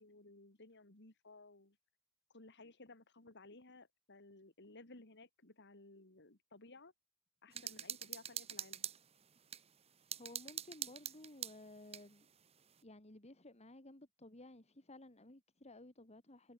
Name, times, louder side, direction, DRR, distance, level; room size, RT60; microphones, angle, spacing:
voice 1, 0.0-1.8 2.3-6.9 7.4-8.9, left 2 dB, 55° left, 2.9 m, -58 dB
voice 2, 7.5-7.8 10.1-12.3 12.8-16.5, left 2 dB, 30° left, 2.4 m, -56 dB
sound 1, 7.5-9.6 10.1-12.1, right 9 dB, 30° right, 1.0 m, -44 dB
head